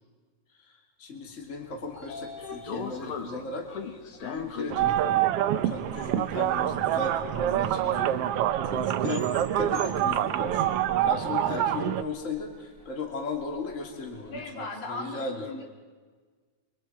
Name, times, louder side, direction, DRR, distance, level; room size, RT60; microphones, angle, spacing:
voice 1, 0.6-3.7 4.2-5.3 5.5-8.1 8.7-9.2 9.6-15.6, left 3 dB, 25° left, 2 dB, 2.8 m, -37 dB
Train / Sliding door, 1.5-11.7, left 5 dB, 55° left, 2.3 m, -41 dB
sound 1, 4.2-14.4, right 1 dB, 5° left, 5.8 m, -51 dB
sound 2, 4.7-12.0, right 11 dB, 75° right, 1.4 m, -26 dB
voice 2, 14.3-15.7, left 2 dB, 80° left, 1 dB, 4.3 m, -37 dB
29.5 x 24.0 x 4.6 m, 1.4 s
omnidirectional pair, 3.5 m